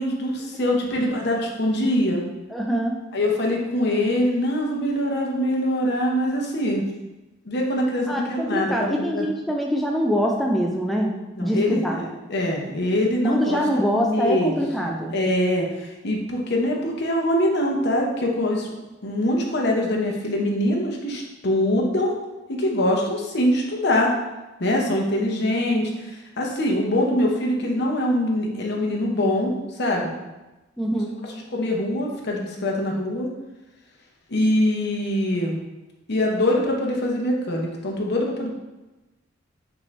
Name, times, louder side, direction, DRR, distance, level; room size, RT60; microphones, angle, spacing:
voice 1, 0.0-2.2 3.1-6.9 7.5-9.2 11.3-18.7 19.0-22.1 22.5-24.1 24.6-30.1 31.5-33.3 34.3-35.6 36.1-38.5, left 1 dB, 60° left, 0 dB, 0.8 m, -23 dB
voice 2, 2.5-3.0 8.1-11.1 11.4-12.0 13.2-15.1 30.8-31.1, equal, ahead, -1 dB, 0.3 m, -24 dB
6.0 x 2.7 x 3.2 m, 1.1 s
head